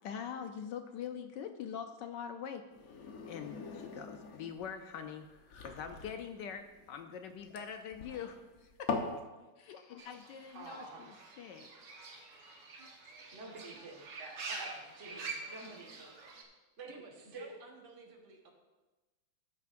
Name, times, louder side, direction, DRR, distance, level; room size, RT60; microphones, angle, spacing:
voice 1, 0.0-2.7 3.3-5.3 5.6-8.9 9.6-11.9, left 7 dB, 75° left, 7 dB, 1.0 m, -44 dB
sound 1, 2.7-9.2, left 4 dB, 50° left, 1.1 m, -42 dB
Fowl / Bird, 10.0-16.4, right 3 dB, 55° right, 1.7 m, -47 dB
voice 2, 10.5-11.0 13.3-16.4 16.8-16.9 17.3-17.5, right 3 dB, 35° right, -3 dB, 1.7 m, -48 dB
voice 3, 16.9-18.5, right 3 dB, 85° right, 1 dB, 2.3 m, -54 dB
13.5 x 9.2 x 2.5 m, 1.1 s
omnidirectional pair, 2.4 m